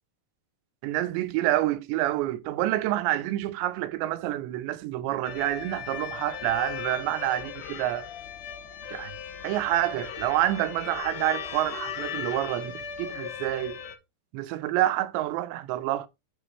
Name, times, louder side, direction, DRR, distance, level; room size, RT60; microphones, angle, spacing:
voice 1, 0.8-8.1 8.9-9.1 9.4-13.8 14.3-16.1, right 14 dB, 90° right, 3.0 m, -28 dB
sound 1, 5.2-14.0, left 8 dB, 80° left, 1.8 m, -37 dB
8.5 x 5.0 x 4.1 m
omnidirectional pair, 5.0 m